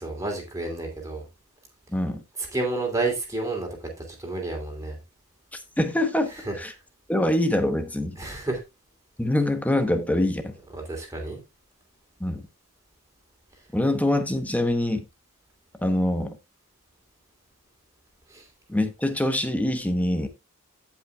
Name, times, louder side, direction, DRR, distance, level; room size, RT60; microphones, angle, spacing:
voice 1, 0.0-1.2 2.4-3.7 4.2-5.0 6.5-6.6 8.2-8.6 10.7-11.4 18.3-18.4, right 2 dB, 15° right, 3.0 m, -30 dB
voice 2, 1.9-2.2 5.8-6.7 7.1-8.2 9.2-10.5 12.2-12.4 13.7-15.0 15.8-16.4 18.7-20.3, left 1 dB, 5° left, 1.0 m, -24 dB
16.5 x 5.7 x 2.3 m
head